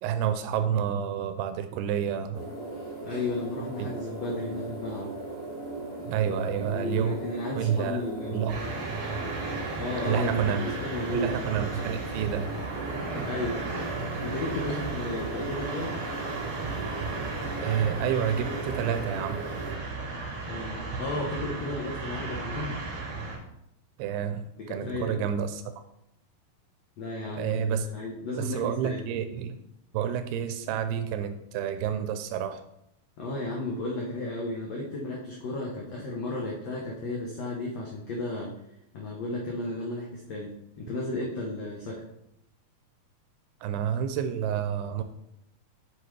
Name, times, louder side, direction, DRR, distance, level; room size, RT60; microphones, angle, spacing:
voice 1, 0.0-2.5 3.8-3.9 6.0-7.2 7.6-8.0 8.3-8.6 10.0-10.6 11.1-12.5 14.7-14.8 17.6-19.4 24.0-25.6 27.4-27.9 28.4-29.6 29.9-32.6 43.6-45.0, right 8 dB, 85° right, 9 dB, 2.5 m, -29 dB
sound 1, 2.3-19.7, right 2 dB, 35° left, 0.4 m, -38 dB
voice 2, 3.0-5.1 6.7-8.4 9.8-11.3 13.1-16.0 20.5-22.8 24.6-25.3 27.0-27.7 27.9-29.0 33.2-38.5 38.9-42.0, left 2 dB, 85° left, -2 dB, 1.4 m, -34 dB
sound 2, 8.5-23.4, right 3 dB, 60° right, 3.7 m, -35 dB
8.1 x 6.0 x 3.2 m, 0.80 s
omnidirectional pair, 4.5 m